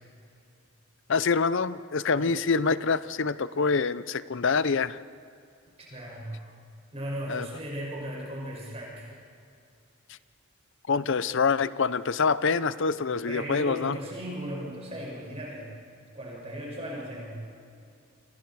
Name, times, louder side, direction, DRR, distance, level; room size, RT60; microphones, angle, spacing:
voice 1, 1.1-5.0 7.3-7.5 10.9-14.0, left 5 dB, 55° left, 16 dB, 0.6 m, -26 dB
voice 2, 5.8-6.4 6.9-9.1 13.2-15.7 16.1-17.4, equal, 30° right, -3 dB, 6.8 m, -37 dB
30.0 x 27.0 x 4.8 m, 2.5 s
head